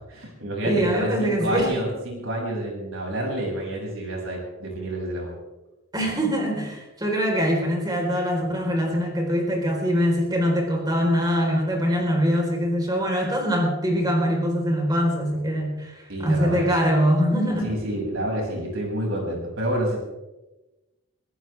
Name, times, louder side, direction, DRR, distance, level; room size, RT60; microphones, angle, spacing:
voice 1, 0.1-5.3 16.1-16.7 17.6-20.0, right 1 dB, 75° right, -1 dB, 6.9 m, -28 dB
voice 2, 0.6-1.7 5.9-17.7, equal, 20° right, 0 dB, 4.3 m, -23 dB
23.5 x 15.0 x 3.6 m, 1.1 s
head